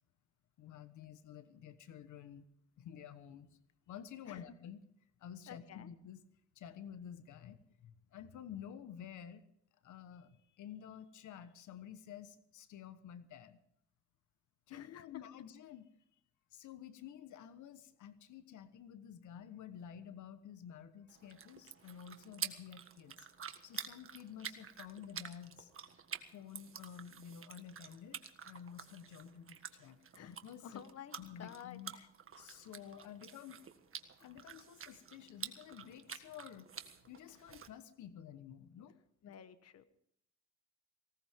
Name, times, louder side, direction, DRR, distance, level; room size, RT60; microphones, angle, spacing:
voice 1, 0.6-2.5 2.8-3.6 3.9-4.8 5.2-6.2 6.5-9.4 9.8-13.6 14.7-15.8 16.5-23.3 23.6-25.7 26.3-30.0 30.3-30.8 31.2-31.9 32.4-33.6 34.2-39.0 39.2-39.3, left 9 dB, 75° left, 12 dB, 1.2 m, -51 dB
voice 2, 5.5-5.9 14.7-15.1 30.1-30.3 30.6-32.1 39.2-39.8, left 9 dB, 55° left, 12 dB, 1.2 m, -52 dB
sound 1, 21.1-37.7, right 7 dB, 45° right, 1.7 m, -49 dB
19.0 x 18.5 x 3.6 m, 0.72 s
cardioid pair, 90°, 30 cm